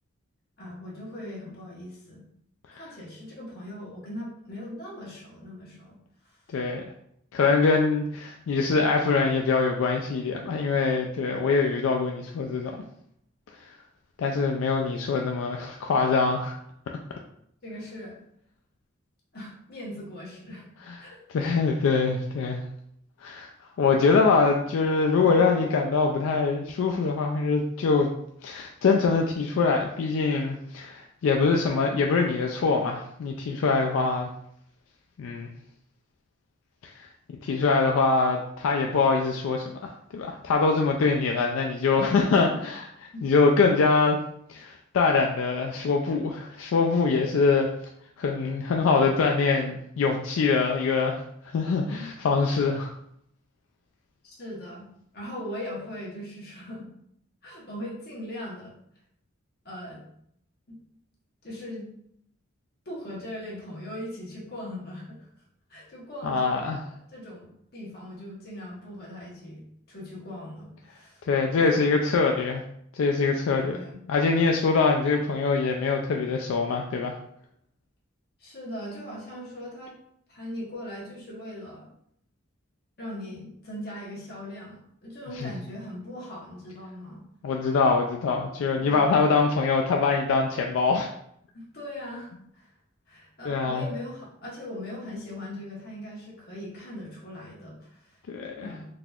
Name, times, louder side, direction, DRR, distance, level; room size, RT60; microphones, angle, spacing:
voice 1, 0.6-2.2 2.7-6.0 6.2-6.4 17.6-18.2 19.3-20.6 21.0-21.2 25.2-25.4 43.1-43.2 54.2-54.9 55.1-56.9 57.4-58.7 59.6-60.0 60.7-60.8 61.4-61.8 62.8-65.3 65.7-71.2 71.5-71.9 73.6-74.0 78.4-79.9 80.3-81.9 83.0-87.2 88.8-89.2 91.5-92.7 93.1-98.2 98.6-98.9, left 1 dB, 50° left, -5 dB, 1.2 m, -40 dB
voice 2, 6.5-6.8 7.3-12.8 14.2-16.6 20.9-21.0 21.3-22.7 23.2-23.5 23.8-28.1 28.4-34.3 35.2-35.5 36.8-37.1 37.4-44.2 44.5-47.7 48.2-51.2 51.5-52.9 66.2-66.8 71.3-72.6 72.9-73.8 74.1-77.1 85.4-85.5 87.4-91.1 93.5-93.9 98.3-98.7, left 4 dB, 80° left, 1 dB, 0.3 m, -24 dB
3.9 x 2.8 x 2.3 m, 0.71 s
head